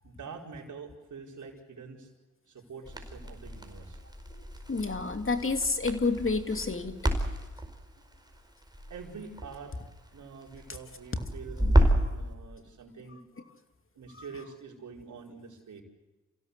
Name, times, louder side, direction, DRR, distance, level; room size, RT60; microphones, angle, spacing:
voice 1, 0.0-2.1 2.5-4.0 8.9-9.7 10.1-13.2 13.9-15.8, right 5 dB, 75° right, 1 dB, 4.6 m, -46 dB
Crackle, 2.8-12.2, right 1 dB, 15° right, 4.8 m, -30 dB
voice 2, 4.7-7.1, left 3 dB, 45° left, 7 dB, 2.7 m, -29 dB
27.5 x 16.5 x 8.2 m, 1.2 s
cardioid pair, 50°, 30 cm